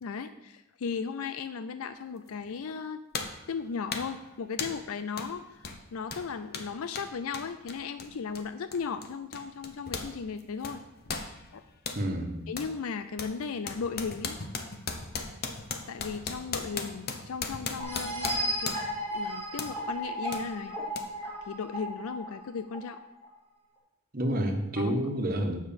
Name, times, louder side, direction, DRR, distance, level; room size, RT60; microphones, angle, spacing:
voice 1, 0.0-3.0 3.5-10.8 11.5-11.6 12.5-14.4 15.9-18.8 19.1-20.8 21.5-23.0 24.8-24.9, left 5 dB, 75° left, 10 dB, 0.4 m, -36 dB
sound 1, 2.3-2.4 3.1-3.4 3.9-4.2 4.6-4.9 5.2-5.3 5.6-10.1 10.4-12.0 12.6-12.7 13.2-19.0 19.6-19.8 20.3-20.5 20.9-21.0, left 4 dB, 45° left, 0.8 m, -37 dB
voice 2, 11.9-12.4 24.1-25.6, equal, 40° right, 3 dB, 1.3 m, -29 dB
sound 2, 17.8-23.3, equal, 10° left, 2.3 m, -34 dB
7.4 x 6.0 x 7.0 m, 0.95 s
head